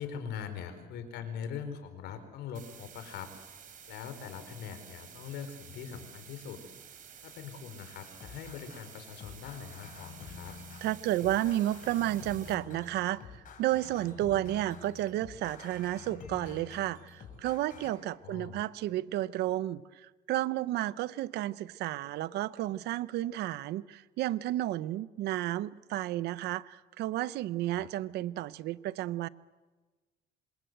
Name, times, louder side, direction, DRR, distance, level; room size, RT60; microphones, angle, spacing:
voice 1, 0.0-3.3 3.9-6.6 7.2-10.6 18.2-18.6 27.7-27.9, left 7 dB, 80° left, 9 dB, 4.5 m, -42 dB
sound 1, 2.5-12.5, right 8 dB, 50° right, 4.2 m, -52 dB
sound 2, 8.0-17.9, left 5 dB, 50° left, 7.0 m, -49 dB
voice 2, 10.8-13.2 13.6-19.8 20.3-29.3, right 14 dB, 80° right, 17 dB, 0.8 m, -32 dB
27.0 x 26.5 x 8.1 m, 1.3 s
cardioid pair, 110°, 17 cm